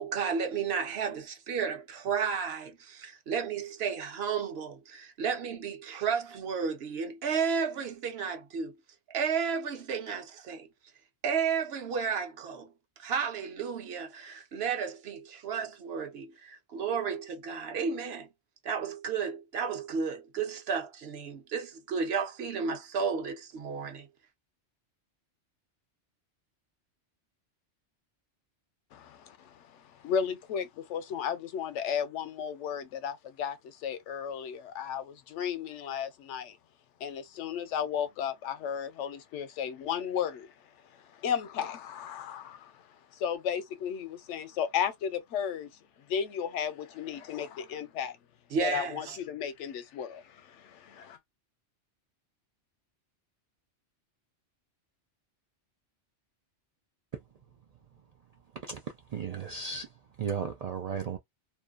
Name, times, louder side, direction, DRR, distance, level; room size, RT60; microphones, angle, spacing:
voice 1, 0.0-8.7 9.1-10.7 11.2-12.7 13.0-18.3 18.6-24.1 48.5-49.2, right 6 dB, 65° right, 0.9 m, -32 dB
voice 2, 28.9-36.6 37.0-40.5 41.1-42.8 43.1-45.7 46.1-48.2 48.6-51.2, left 8 dB, 80° left, 0.9 m, -34 dB
voice 3, 58.5-61.2, right 6 dB, 90° right, 0.3 m, -36 dB
2.6 x 2.2 x 2.3 m
omnidirectional pair, 1.2 m